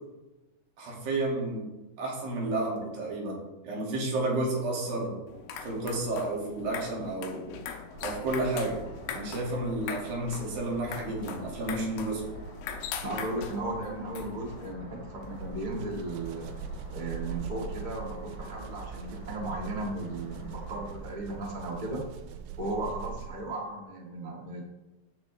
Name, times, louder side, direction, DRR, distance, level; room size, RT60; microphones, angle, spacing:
voice 1, 0.8-1.7 2.0-5.2 5.6-7.6 8.0-8.9 9.1-12.3, right 2 dB, 60° right, -3 dB, 4.0 m, -31 dB
sound 1, 5.3-14.7, left 7 dB, 85° left, 3.0 m, -41 dB
sound 2, 7.9-21.0, equal, 35° left, 2.3 m, -46 dB
voice 2, 13.0-16.5 16.9-22.0 22.6-24.6, right 2 dB, 35° right, -1 dB, 0.7 m, -36 dB
sound 3, 15.2-23.5, right 7 dB, 85° right, 2.1 m, -41 dB
14.5 x 6.8 x 3.4 m, 1.1 s
omnidirectional pair, 4.7 m